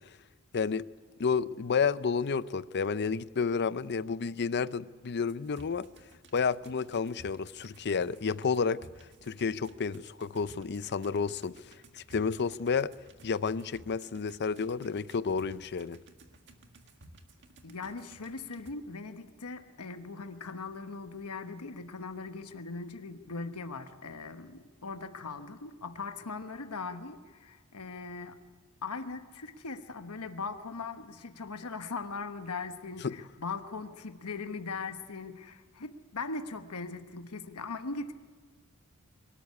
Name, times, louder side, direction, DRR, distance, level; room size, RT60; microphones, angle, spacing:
voice 1, 0.5-0.8 1.2-5.9 6.3-8.8 9.3-11.5 11.9-12.9 13.2-16.0 33.0-33.2, left 5 dB, 50° left, 0.5 m, -30 dB
sound 1, 5.3-18.7, right 1 dB, 55° right, 1.7 m, -56 dB
voice 2, 17.6-28.4 28.8-38.1, left 4 dB, 85° left, 1.2 m, -40 dB
23.5 x 13.0 x 9.8 m
head